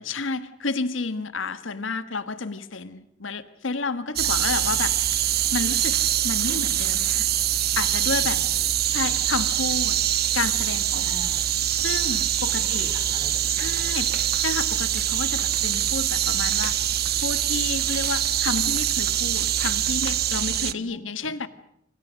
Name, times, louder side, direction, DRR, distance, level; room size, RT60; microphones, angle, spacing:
voice 1, 0.0-4.9 5.5-6.0 6.2-7.3 7.8-8.4 8.9-10.0 10.3-11.1 11.8-12.9 13.5-14.1 14.4-16.7 17.2-21.5, left 4 dB, 75° left, 12 dB, 1.4 m, -30 dB
voice 2, 4.2-4.8 8.2-9.2 11.0-11.5 12.5-14.0 20.5-21.3, right 1 dB, 20° right, 8 dB, 3.7 m, -46 dB
sound 1, 4.2-20.7, right 11 dB, 55° right, 1.0 m, -24 dB
28.0 x 25.5 x 6.4 m, 0.75 s
head